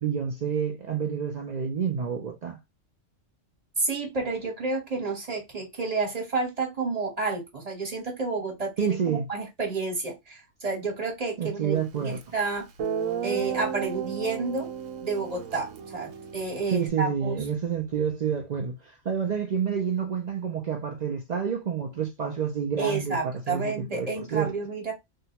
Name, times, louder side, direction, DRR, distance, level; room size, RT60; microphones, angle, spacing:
voice 1, 0.0-2.6 8.8-9.3 11.4-12.2 16.7-24.5, right 7 dB, 65° right, 0.4 m, -29 dB
voice 2, 3.8-12.7 13.2-14.7 15.0-17.4 22.8-24.9, right 3 dB, 30° right, 1.2 m, -30 dB
Guitar, 12.2-12.3 12.8-16.9, right 8 dB, 90° right, 1.1 m, -33 dB
3.5 x 2.2 x 2.8 m
omnidirectional pair, 1.3 m